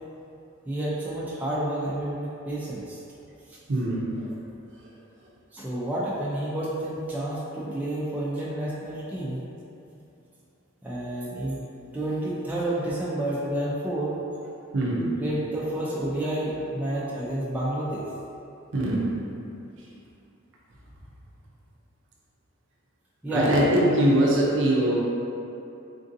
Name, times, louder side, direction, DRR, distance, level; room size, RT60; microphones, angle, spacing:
voice 1, 0.7-3.0 3.5-3.6 5.5-9.4 9.9-10.0 10.8-11.6 11.9-14.1 15.2-18.1 23.2-23.5, right 1 dB, 5° right, -8 dB, 0.4 m, -30 dB
voice 2, 3.7-4.3 14.7-15.1 18.7-19.1 23.3-24.9, right 1 dB, 60° right, -4 dB, 0.5 m, -22 dB
3.6 x 2.6 x 2.6 m, 2.7 s
head